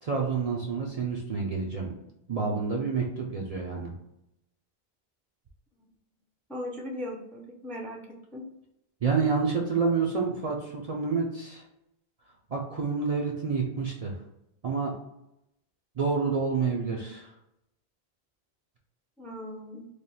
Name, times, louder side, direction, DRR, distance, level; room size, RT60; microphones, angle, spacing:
voice 1, 0.0-1.9 2.3-3.9 9.0-11.6 12.5-14.2 14.6-14.9 16.0-17.3, right 5 dB, 50° right, -1 dB, 0.5 m, -28 dB
voice 2, 6.5-8.0 8.3-8.5 19.2-19.9, left 1 dB, ahead, 0 dB, 0.4 m, -38 dB
3.3 x 2.2 x 4.1 m, 0.85 s
omnidirectional pair, 1.0 m